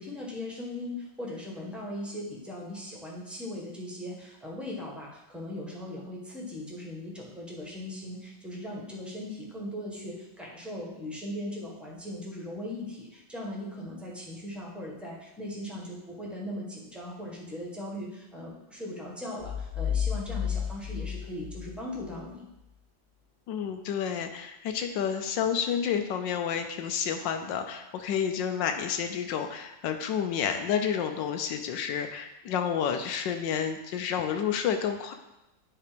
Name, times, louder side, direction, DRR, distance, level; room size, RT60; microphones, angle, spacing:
voice 1, 0.0-22.5, left 1 dB, ahead, -4 dB, 1.3 m, -39 dB
sound 1, 19.4-22.2, left 8 dB, 35° left, 3.1 m, -32 dB
voice 2, 23.5-35.1, left 8 dB, 90° left, 6 dB, 1.4 m, -30 dB
9.0 x 3.3 x 5.1 m, 0.92 s
omnidirectional pair, 1.9 m